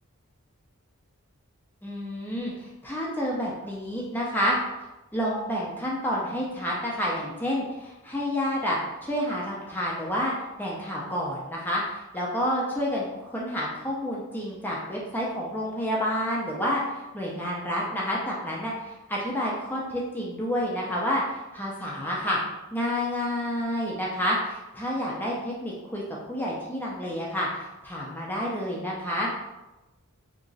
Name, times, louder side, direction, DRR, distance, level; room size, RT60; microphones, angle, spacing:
voice 1, 1.8-4.6 5.1-10.3 10.6-22.4 22.7-26.0 26.3-29.3, equal, 10° left, -4 dB, 0.5 m, -29 dB
2.9 x 2.4 x 3.9 m, 1.0 s
head